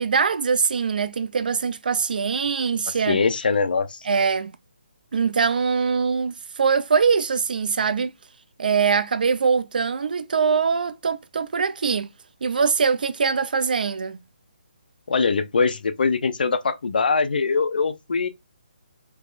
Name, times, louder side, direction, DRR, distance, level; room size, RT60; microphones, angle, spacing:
voice 1, 0.0-3.2 4.0-4.5 5.1-8.1 8.6-12.1 12.4-14.2, right 5 dB, 65° right, 0.4 m, -22 dB
voice 2, 3.0-4.0 15.1-18.3, left 4 dB, 70° left, 0.6 m, -22 dB
3.5 x 3.0 x 2.4 m
hypercardioid pair, 170°, 5 cm